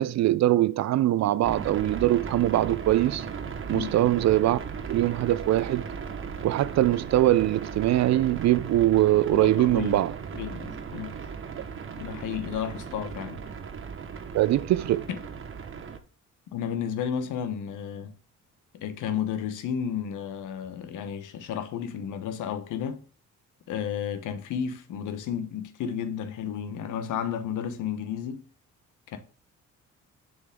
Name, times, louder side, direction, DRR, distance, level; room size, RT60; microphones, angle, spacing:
voice 1, 0.0-3.3 3.7-4.6 4.9-5.8 6.4-10.2 14.3-15.1, right 14 dB, 60° right, 0.5 m, -22 dB
sound 1, 1.4-16.0, right 6 dB, 45° right, 1.0 m, -37 dB
voice 2, 9.3-10.0 10.3-11.2 12.0-13.4 15.1-15.2 16.5-18.1 18.7-23.0 23.7-28.4 29.1-29.2, left 8 dB, 85° left, 1.1 m, -32 dB
6.8 x 5.2 x 3.7 m
cardioid pair, 90°, 30 cm